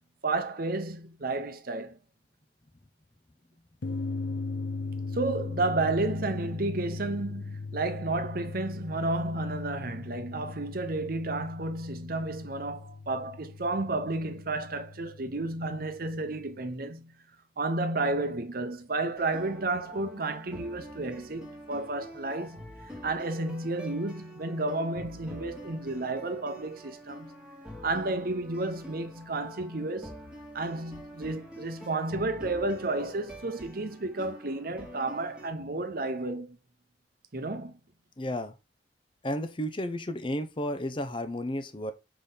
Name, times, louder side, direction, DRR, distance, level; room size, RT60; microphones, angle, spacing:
voice 1, 0.2-2.0 5.1-17.2 17.6-27.4 27.8-30.2 30.5-36.6 37.3-37.8, right 2 dB, 55° right, 0.9 m, -32 dB
sound 1, 3.8-16.7, left 3 dB, 80° left, 0.6 m, -39 dB
sound 2, 19.2-35.5, equal, 5° right, 1.4 m, -46 dB
voice 2, 38.2-38.6 39.2-41.9, left 1 dB, 30° left, 0.7 m, -32 dB
6.7 x 3.9 x 4.0 m
head